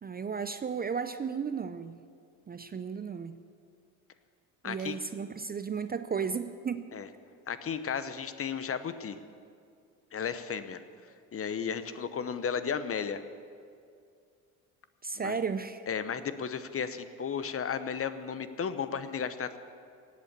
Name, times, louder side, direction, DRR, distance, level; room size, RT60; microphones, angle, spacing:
voice 1, 0.0-2.0 2.5-3.4 4.6-6.9 15.0-15.8, right 6 dB, 25° right, 11 dB, 0.6 m, -34 dB
voice 2, 4.6-5.0 6.9-7.1 7.5-9.2 10.1-10.8 11.3-13.2 15.2-15.4 15.9-19.6, left 7 dB, 35° left, 12 dB, 0.9 m, -34 dB
17.5 x 8.4 x 8.3 m, 2.3 s
hypercardioid pair, 70°, 41 cm